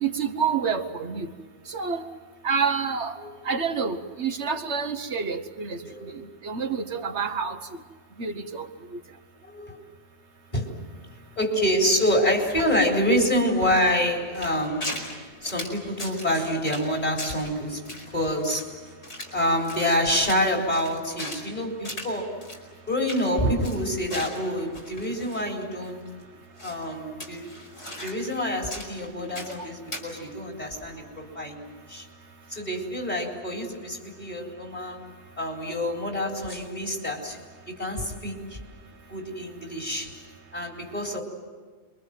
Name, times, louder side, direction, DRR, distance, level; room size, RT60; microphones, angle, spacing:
voice 1, 0.0-1.3 1.7-2.1 2.4-3.2 3.5-5.8 6.4-7.6 8.2-8.7, right 6 dB, 70° right, 1.5 m, -28 dB
voice 2, 5.8-6.2 9.4-9.8 10.5-10.7 11.4-15.0 15.4-18.8 19.3-22.4 22.9-26.0 26.6-27.6 28.0-32.0 32.5-35.0 35.4-37.4 37.7-38.6 39.1-40.2 40.5-41.2, equal, 35° left, 4.5 m, -27 dB
sound 1, 14.3-15.2 15.4-16.4 16.7-16.9 17.2-17.5 17.9-19.4 19.6-21.5 21.9-22.1 22.4-22.6 22.9-23.3 23.6-25.5 25.8-25.9 26.6-26.9 27.2-28.4 28.7-29.6 29.9-30.0, left 1 dB, 70° left, 5.2 m, -38 dB
27.5 x 23.5 x 7.7 m
omnidirectional pair, 1.2 m